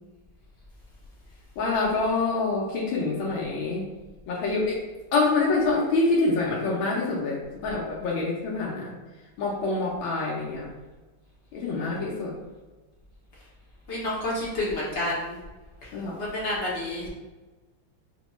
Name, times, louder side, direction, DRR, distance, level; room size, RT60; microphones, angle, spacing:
voice 1, 1.6-3.8 4.3-4.8 5.1-8.9 9.4-10.7 11.5-12.3 15.9-16.1, left 3 dB, 80° left, -4 dB, 1.5 m, -26 dB
voice 2, 13.9-15.4 16.2-17.1, left 1 dB, 55° left, -5 dB, 0.8 m, -29 dB
5.6 x 2.2 x 3.0 m, 1.2 s
omnidirectional pair, 2.2 m